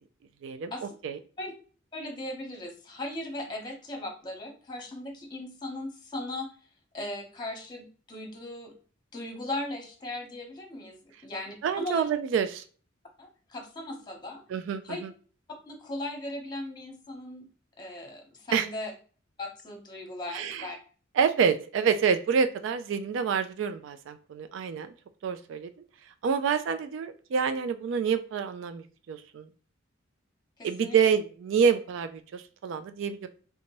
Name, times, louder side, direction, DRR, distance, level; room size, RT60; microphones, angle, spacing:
voice 1, 0.4-1.2 11.6-12.6 14.5-15.1 18.5-18.7 20.3-20.7 21.2-24.9 25.2-25.7 26.2-29.5 30.6-33.3, right 6 dB, 65° right, 10 dB, 0.3 m, -27 dB
voice 2, 1.9-6.5 6.9-8.7 9.1-12.0 13.2-14.4 14.8-15.0 15.7-17.5 17.8-18.9 19.4-20.8 30.6-31.0, left 1 dB, 20° left, 2 dB, 0.9 m, -38 dB
3.3 x 2.8 x 3.0 m, 0.40 s
head